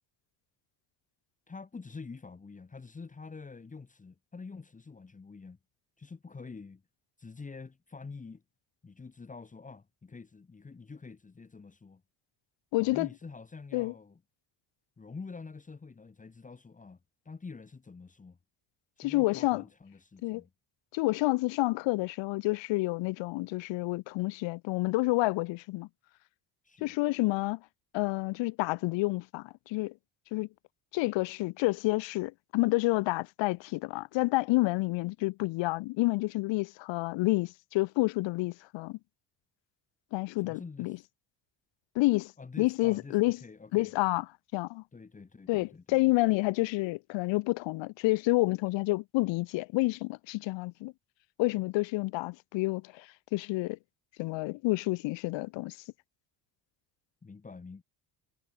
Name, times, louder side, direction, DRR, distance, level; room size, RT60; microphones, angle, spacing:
voice 1, 1.5-5.6 6.0-6.8 7.2-8.4 8.8-12.0 12.8-14.2 15.0-17.0 17.3-18.4 19.0-20.5 26.6-27.0 40.4-41.0 42.4-43.9 44.9-46.0 57.2-57.8, left 4 dB, 15° left, 1.9 m, -47 dB
voice 2, 12.7-13.1 13.7-13.9 19.0-19.6 20.2-20.4 20.9-25.9 26.8-27.6 27.9-29.9 30.3-30.5 30.9-39.0 40.1-41.0 42.0-42.3 42.6-43.4 43.7-44.3 44.5-44.8 45.5-50.9 51.4-53.8 54.2-55.8, left 21 dB, 80° left, 0.6 m, -29 dB
cardioid pair, 160°, 44 cm